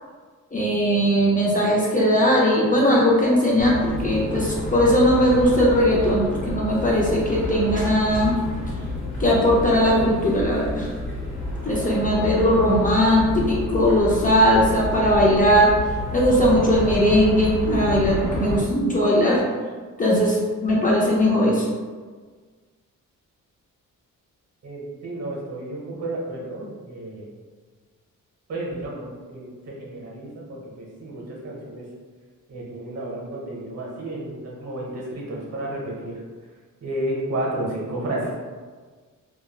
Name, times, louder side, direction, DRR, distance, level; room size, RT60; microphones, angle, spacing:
voice 1, 0.5-8.4 9.2-10.9 11.6-15.7 16.1-19.4 20.0-21.7, equal, 25° left, -4 dB, 0.5 m, -19 dB
sound 1, 3.6-18.6, left 2 dB, 60° left, 1.1 m, -30 dB
voice 2, 24.6-27.3 28.5-31.8 32.5-36.2 36.8-38.4, right 1 dB, 50° right, -4 dB, 0.8 m, -32 dB
3.1 x 2.2 x 2.3 m, 1.5 s
cardioid pair, 125°, 32 cm